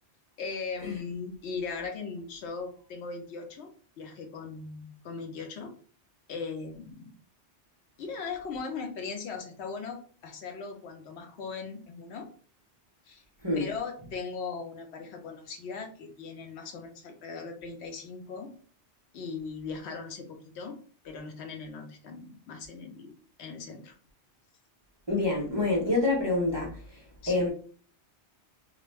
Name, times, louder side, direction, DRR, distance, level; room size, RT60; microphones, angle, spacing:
voice 1, 0.4-3.7 4.0-5.7 6.3-7.2 8.0-12.3 13.1-13.2 13.5-18.5 19.1-20.8 21.0-23.9 27.2-27.5, left 5 dB, 75° left, 4 dB, 0.8 m, -39 dB
voice 2, 25.1-27.0 27.3-27.5, left 2 dB, 30° right, -3 dB, 0.5 m, -27 dB
2.3 x 2.1 x 3.1 m, 0.41 s
omnidirectional pair, 1.1 m